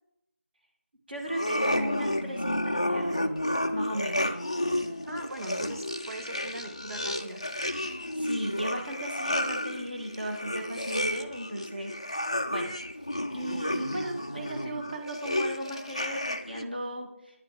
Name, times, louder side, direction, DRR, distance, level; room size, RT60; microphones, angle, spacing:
voice 1, 1.1-3.3 3.7-4.3 8.0-11.9 12.5-12.8 13.3-17.1, right 1 dB, 40° right, 2 dB, 1.6 m, -36 dB
sound 1, 1.3-16.7, left 1 dB, 25° left, 0.3 m, -31 dB
voice 2, 5.1-7.4, right 1 dB, 90° right, 5 dB, 1.1 m, -40 dB
10.0 x 6.7 x 3.3 m, 0.78 s
figure-of-eight pair, 170°, 8 cm